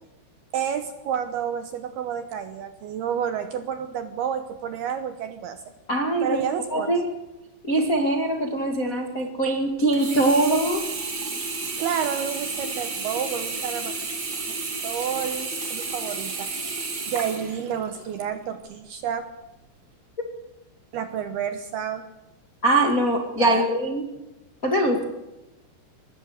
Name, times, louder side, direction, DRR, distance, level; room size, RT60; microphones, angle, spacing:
voice 1, 0.5-5.6 6.2-6.9 11.8-13.9 14.5-16.5 17.1-19.3 20.9-22.1 23.3-23.7, right 8 dB, 75° right, 8 dB, 2.5 m, -30 dB
voice 2, 5.9-6.4 6.7-7.0 7.6-10.8 22.6-24.0 24.6-25.1, right 1 dB, 40° left, 2 dB, 1.1 m, -22 dB
Sink (filling or washing), 9.9-18.2 18.7-18.8, right 3 dB, 35° right, 4.1 m, -32 dB
23.5 x 21.0 x 6.6 m, 0.98 s
omnidirectional pair, 5.7 m